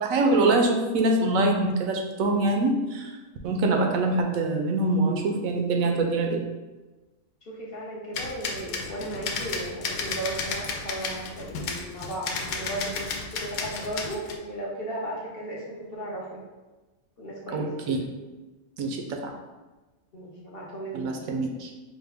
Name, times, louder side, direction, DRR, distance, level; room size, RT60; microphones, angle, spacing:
voice 1, 0.0-3.2 3.4-6.4 17.5-18.1 18.8-19.3 20.9-21.7, right 2 dB, 75° right, 2 dB, 1.0 m, -24 dB
voice 2, 7.5-16.4 17.2-17.7 20.1-21.1, right 1 dB, 55° left, -4 dB, 0.8 m, -35 dB
sound 1, 8.2-14.4, left 4 dB, 85° left, 1.0 m, -33 dB
4.8 x 2.1 x 3.4 m, 1.2 s
omnidirectional pair, 1.5 m